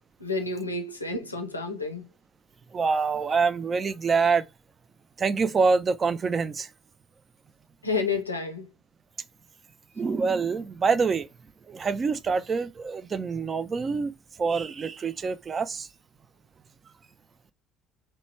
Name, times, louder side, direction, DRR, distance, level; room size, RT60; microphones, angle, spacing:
voice 1, 0.2-2.1 7.8-8.7, left 3 dB, 90° left, 0.4 m, -30 dB
voice 2, 2.7-4.4 5.2-6.7 10.0-11.3 11.7-15.9, right 5 dB, 35° right, 0.4 m, -26 dB
3.0 x 2.2 x 2.9 m
figure-of-eight pair, 55°, 0 cm